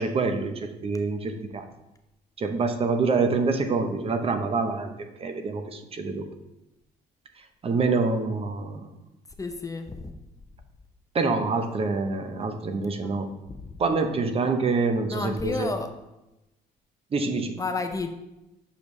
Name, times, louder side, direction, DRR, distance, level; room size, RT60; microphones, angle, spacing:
voice 1, 0.0-1.7 2.4-4.9 5.2-6.3 7.6-8.9 11.1-13.3 13.8-15.7 17.1-17.6, right 4 dB, 35° right, 7 dB, 0.7 m, -26 dB
voice 2, 9.4-10.1 13.0-13.2 13.5-13.7 15.1-15.9 17.6-18.1, left 3 dB, 20° left, 6 dB, 0.5 m, -31 dB
6.7 x 5.1 x 3.2 m, 0.95 s
cardioid pair, 110°, 17 cm